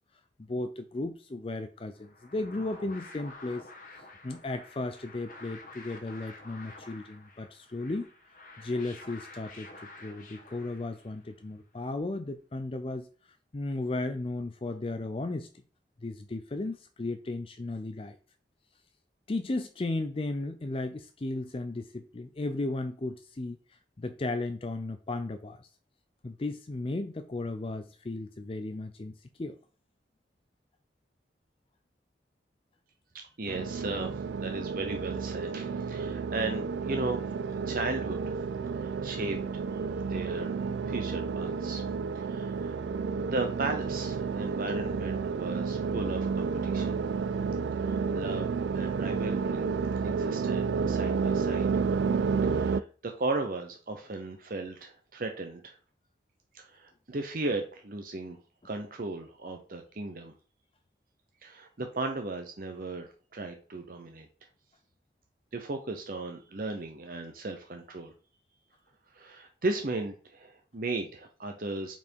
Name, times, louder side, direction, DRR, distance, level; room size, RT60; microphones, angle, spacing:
voice 1, 0.4-3.7 4.2-8.1 8.6-9.7 10.0-13.1 13.5-15.5 16.0-18.2 19.3-23.6 24.0-25.7 26.2-29.1 29.4-29.6 48.8-49.0, left 2 dB, 30° left, 8 dB, 0.4 m, -35 dB
sound 1, 2.0-11.3, left 2 dB, 50° left, 1.2 m, -50 dB
voice 2, 33.1-37.2 37.6-38.3 38.8-39.6 40.0-40.6 40.9-41.8 42.1-42.8 43.2-47.0 47.8-49.7 50.0-51.7 52.4-55.8 56.5-58.4 58.6-60.3 61.4-64.3 65.5-68.1 69.1-71.9, right 2 dB, 50° right, 4 dB, 0.7 m, -36 dB
sound 2, 33.5-52.8, right 5 dB, 85° right, 0.3 m, -31 dB
5.6 x 4.4 x 4.5 m, 0.40 s
head